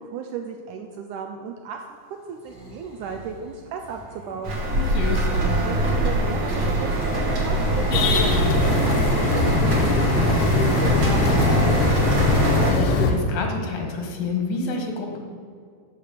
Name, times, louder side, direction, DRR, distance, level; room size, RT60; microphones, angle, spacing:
voice 1, 0.0-4.6 5.6-12.5, right 6 dB, 85° right, 4 dB, 1.8 m, -35 dB
sound 1, 2.2-6.0 6.7-8.8 10.4-12.7, left 1 dB, ahead, 1.7 m, -39 dB
sound 2, 4.4-12.7, right 1 dB, 45° right, 1.8 m, -23 dB
voice 2, 4.7-5.3 12.5-15.2, left 4 dB, 70° left, 2 dB, 3.2 m, -29 dB
sound 3, 7.9-13.1, left 3 dB, 90° left, 1.2 m, -22 dB
13.0 x 5.2 x 6.7 m, 2.2 s
omnidirectional pair, 4.2 m